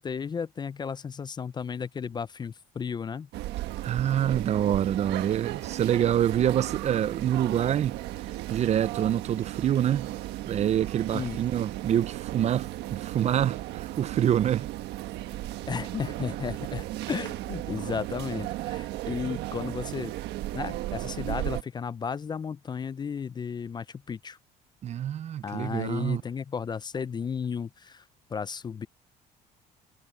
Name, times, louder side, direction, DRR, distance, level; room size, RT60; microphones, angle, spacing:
voice 1, 0.0-3.3 11.1-11.4 15.7-20.1 20.5-24.4 25.4-28.0 28.3-28.9, left 6 dB, 25° left, 0.4 m, -34 dB
sound 1, 3.3-21.6, right 16 dB, 85° right, 1.4 m, -35 dB
voice 2, 3.8-8.0 8.5-10.1 10.5-14.7 24.8-26.2, right 10 dB, 40° right, 0.4 m, -26 dB
cardioid pair, 110°, 17 cm